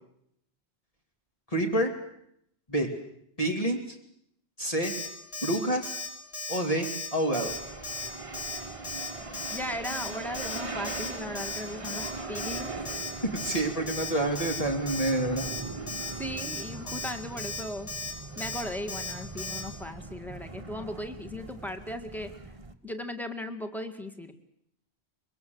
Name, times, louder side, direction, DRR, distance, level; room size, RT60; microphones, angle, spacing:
voice 1, 1.5-1.9 2.7-2.9 3.4-4.0 4.6-4.9 5.4-6.0 6.5-7.5 13.3-15.5, right 1 dB, 35° left, 1 dB, 2.8 m, -28 dB
Alarm, 4.8-5.1 5.3-5.6 5.8-6.1 6.3-6.6 6.8-7.1 7.3-7.6 7.8-8.1 8.3-8.6 8.8-9.1 9.3-9.6 9.8-10.1 10.3-10.6 10.8-11.1 11.3-11.6 11.8-12.1 12.3-12.6 12.9-13.1 13.4-13.6 13.9-14.1 14.4-14.6 14.9-15.1 15.4-15.6 15.9-16.1 16.4-16.6 16.9-17.1 17.4-17.6 17.9-18.1 18.4-18.6 18.9-19.1 19.4-19.6, left 3 dB, 70° left, 6.6 m, -36 dB
sound 1, 7.4-22.7, right 3 dB, 30° right, 1.3 m, -40 dB
voice 2, 9.5-12.8 16.2-17.9 18.4-22.3 22.8-24.3, left 1 dB, ahead, 6 dB, 1.9 m, -37 dB
24.5 x 22.0 x 8.0 m, 0.74 s
omnidirectional pair, 1.1 m